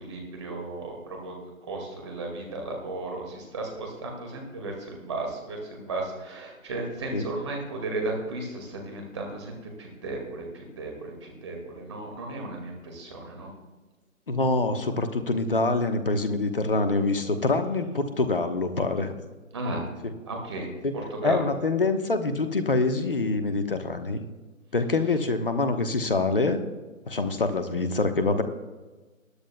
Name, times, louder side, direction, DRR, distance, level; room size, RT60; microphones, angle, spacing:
voice 1, 0.0-1.4 1.6-13.5 19.5-19.9 20.3-20.7 21.1-21.5, right 2 dB, 20° right, 1 dB, 2.1 m, -35 dB
voice 2, 14.3-19.2 20.8-20.9 21.2-24.2 24.7-26.6 27.1-28.4, left 3 dB, 40° left, 8 dB, 1.2 m, -25 dB
21.0 x 10.5 x 2.3 m, 1.2 s
figure-of-eight pair, 155°, 41 cm